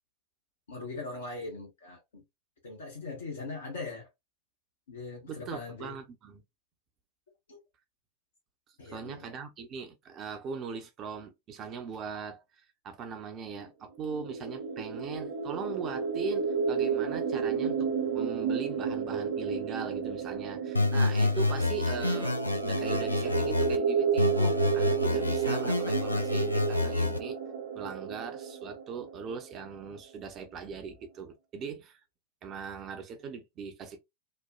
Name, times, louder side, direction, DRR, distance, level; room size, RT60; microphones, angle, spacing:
voice 1, 0.7-2.2 2.6-4.1 4.9-5.9 7.5-7.6 8.8-9.3 13.5-13.6, left 3 dB, 65° left, 0.9 m, -40 dB
voice 2, 5.3-6.4 8.9-12.4 12.8-27.4 27.7-32.0 32.4-34.0, right 5 dB, 30° right, 0.7 m, -40 dB
sound 1, 14.0-29.7, right 6 dB, 60° right, 1.0 m, -31 dB
sound 2, 20.7-23.8 24.2-27.2, left 3 dB, 85° left, 0.4 m, -28 dB
3.0 x 2.2 x 2.3 m
figure-of-eight pair, 90°, 0 cm